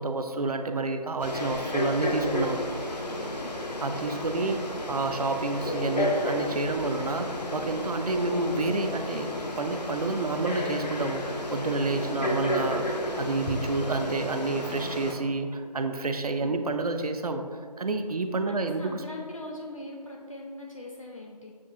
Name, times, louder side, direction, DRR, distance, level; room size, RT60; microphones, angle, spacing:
voice 1, 0.0-2.6 3.8-9.3 9.6-17.5 17.8-19.0, right 3 dB, 65° right, 7 dB, 0.4 m, -29 dB
Frog, 1.2-15.1, left 1 dB, 85° left, 0.8 m, -32 dB
voice 2, 18.5-21.5, left 2 dB, 55° left, -1 dB, 0.5 m, -40 dB
7.1 x 2.4 x 2.5 m, 2.1 s
figure-of-eight pair, 175°, 21 cm